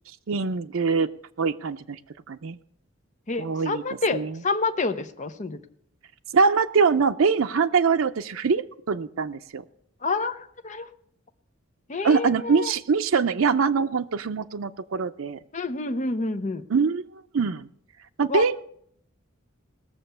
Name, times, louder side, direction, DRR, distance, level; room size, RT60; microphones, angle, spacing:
voice 1, 0.3-1.1 1.4-2.0 2.3-2.6 3.4-3.8 4.1-4.3 6.3-9.6 12.0-15.4 16.7-17.0 17.3-17.7 18.2-18.6, right 5 dB, 85° right, 8 dB, 0.5 m, -23 dB
voice 2, 3.3-5.6 10.0-10.9 11.9-12.7 15.5-16.6 18.3-18.4, left 3 dB, 35° left, 9 dB, 0.8 m, -28 dB
18.5 x 6.9 x 6.7 m, 0.68 s
head